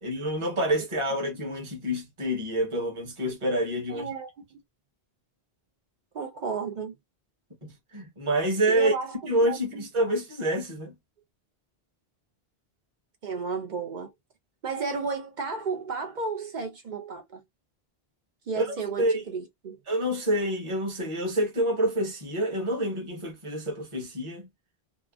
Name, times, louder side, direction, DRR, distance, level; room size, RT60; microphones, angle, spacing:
voice 1, 0.0-4.1 7.6-8.9 9.3-10.9 18.5-19.2 19.9-24.5, right 1 dB, 30° right, 1.0 m, -27 dB
voice 2, 3.9-4.6 6.1-6.9 8.7-9.9 13.2-14.1 14.6-17.4 18.5-19.8, right 5 dB, 55° right, 0.6 m, -33 dB
2.8 x 2.4 x 2.3 m
omnidirectional pair, 1.0 m